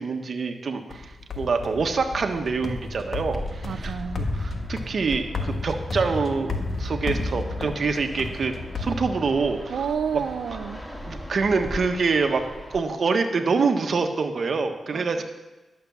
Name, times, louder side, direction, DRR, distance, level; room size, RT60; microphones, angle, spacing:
voice 1, 0.0-9.7 11.1-12.4 12.7-15.2, right 4 dB, 60° right, 5 dB, 1.3 m, -26 dB
sound 1, 0.9-9.7, left 3 dB, 50° left, 1.5 m, -32 dB
Fixed-wing aircraft airplane, 1.8-12.8, equal, 5° left, 1.9 m, -39 dB
voice 2, 3.6-4.3 9.7-10.8 14.9-15.2, right 7 dB, 80° right, 5 dB, 0.5 m, -30 dB
11.5 x 6.8 x 7.2 m, 1.1 s
cardioid pair, 70°, 0 cm